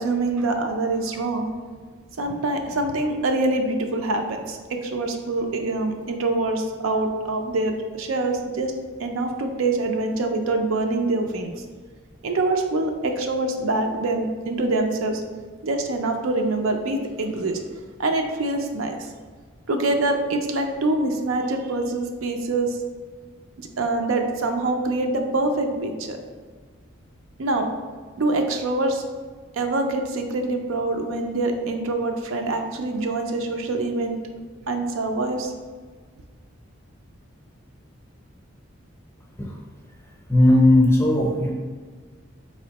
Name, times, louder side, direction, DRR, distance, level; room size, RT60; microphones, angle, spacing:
voice 1, 0.0-1.5 2.2-8.7 9.0-11.5 12.2-15.2 15.6-17.6 18.0-19.1 19.7-22.8 23.8-26.2 27.4-27.7 28.2-29.0 29.5-34.2 34.7-35.5, right 2 dB, 80° right, 4 dB, 0.4 m, -25 dB
voice 2, 40.3-41.5, left 1 dB, 10° left, -2 dB, 0.6 m, -16 dB
4.3 x 3.0 x 2.8 m, 1.5 s
head